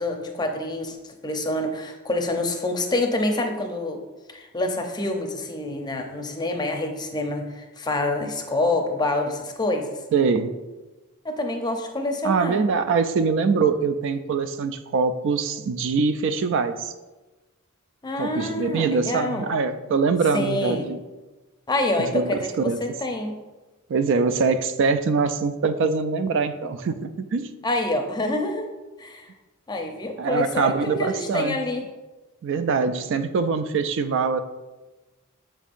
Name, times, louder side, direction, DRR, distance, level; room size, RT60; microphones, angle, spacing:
voice 1, 0.0-4.0 4.3-9.9 11.2-12.6 18.0-19.5 20.3-20.9 21.7-23.3 27.6-28.7 29.0-29.3 29.7-31.8, left 2 dB, 20° left, 4 dB, 0.6 m, -27 dB
voice 2, 10.1-10.5 12.2-16.9 18.2-21.0 22.0-22.4 22.6-22.8 23.9-27.5 30.2-31.6 32.4-34.4, right 5 dB, 60° right, 10 dB, 0.3 m, -23 dB
7.2 x 5.2 x 2.5 m, 1.1 s
head